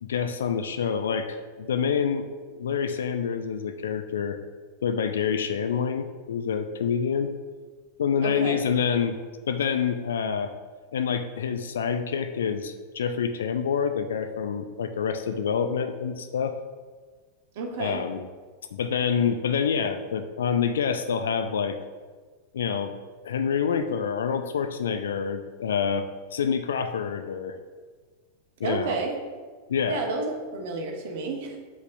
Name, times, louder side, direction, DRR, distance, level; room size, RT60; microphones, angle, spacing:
voice 1, 0.0-2.3 2.5-4.4 4.8-7.3 8.0-9.2 9.5-10.5 10.9-16.6 17.8-18.2 18.7-21.8 22.5-22.9 23.2-27.6 28.6-29.0 29.7-30.0, left 7 dB, 65° left, 9 dB, 0.4 m, -27 dB
voice 2, 8.2-8.6 17.5-18.0 28.6-29.2 29.9-31.6, right 4 dB, 50° right, 1 dB, 1.1 m, -30 dB
7.8 x 5.3 x 2.6 m, 1.4 s
figure-of-eight pair, 90°, 0 cm